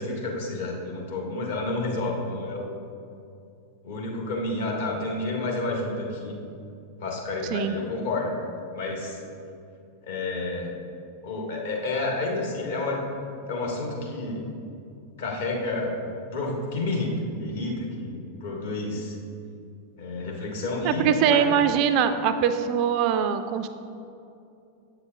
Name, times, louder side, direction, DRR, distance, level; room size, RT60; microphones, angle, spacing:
voice 1, 0.0-2.8 3.8-6.4 7.0-8.3 8.7-9.2 10.0-10.7 11.2-13.0 13.5-14.4 15.2-16.0 16.3-19.2 20.0-21.6, left 2 dB, 60° left, -1 dB, 1.1 m, -30 dB
voice 2, 20.8-23.7, right 8 dB, 40° right, 9 dB, 0.3 m, -22 dB
7.9 x 6.7 x 2.4 m, 2.6 s
figure-of-eight pair, 90°, 0 cm